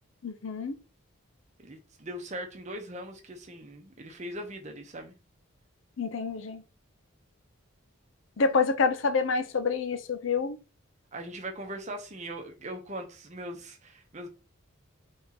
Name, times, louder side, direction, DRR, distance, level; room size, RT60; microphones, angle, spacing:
voice 1, 0.2-0.7 6.0-6.6 8.4-10.6, left 4 dB, 65° left, 0.5 m, -27 dB
voice 2, 1.6-5.1 11.1-14.3, right 1 dB, 35° right, 0.8 m, -40 dB
3.7 x 2.8 x 3.9 m
head